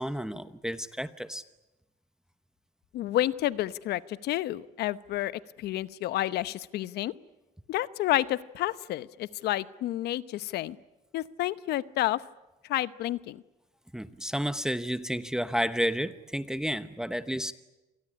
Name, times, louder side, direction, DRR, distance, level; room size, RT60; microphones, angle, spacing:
voice 1, 0.0-1.4 13.9-17.5, equal, 5° right, 11 dB, 1.0 m, -31 dB
voice 2, 2.9-7.1 7.7-10.8 11.1-12.2 12.7-13.4, left 14 dB, 75° left, 16 dB, 0.9 m, -30 dB
27.0 x 18.5 x 9.9 m, 1.0 s
cardioid pair, 110°, 17 cm